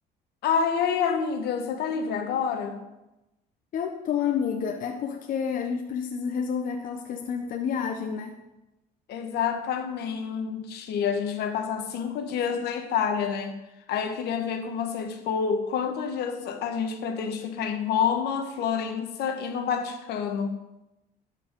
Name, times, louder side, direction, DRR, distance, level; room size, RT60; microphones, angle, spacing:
voice 1, 0.4-2.8 9.1-13.5 13.9-20.5, left 7 dB, 75° left, 1.2 m, -28 dB
voice 2, 3.7-8.4, left 7 dB, 55° left, 0.8 m, -29 dB
12.0 x 4.7 x 5.3 m
cardioid pair, 110°, 17 cm